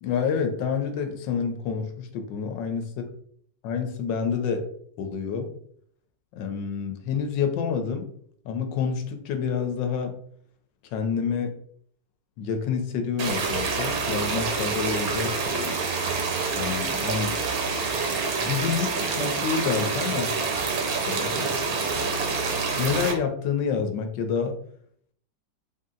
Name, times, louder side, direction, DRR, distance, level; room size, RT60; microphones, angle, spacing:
voice 1, 0.0-2.9 3.6-4.6 5.0-5.5 6.4-8.1 8.4-10.1 10.9-11.5 12.4-15.8 16.6-17.5 18.4-20.3 21.1-21.8 22.8-24.6, left 6 dB, 80° left, 5 dB, 1.3 m, -28 dB
sound 1, 13.2-23.1, right 4 dB, 65° right, 1.1 m, -27 dB
3.6 x 2.7 x 3.7 m, 0.64 s
omnidirectional pair, 2.0 m